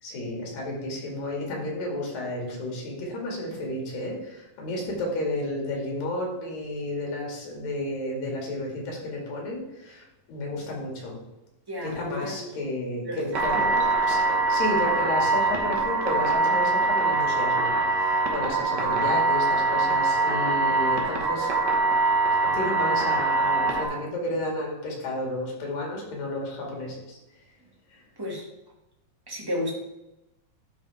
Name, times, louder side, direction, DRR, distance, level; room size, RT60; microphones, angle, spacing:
voice 1, 0.0-11.2 11.8-14.2 14.5-21.9 22.4-27.2 27.9-28.0, left 1 dB, 80° left, -1 dB, 4.1 m, -32 dB
voice 2, 11.7-12.6 13.0-13.2 13.5-13.9 28.2-28.4 29.3-29.7, left 1 dB, 10° right, -4 dB, 1.5 m, -33 dB
sound 1, 13.3-23.8, right 3 dB, 75° right, 0.9 m, -23 dB
12.0 x 5.5 x 3.6 m, 0.94 s
omnidirectional pair, 3.9 m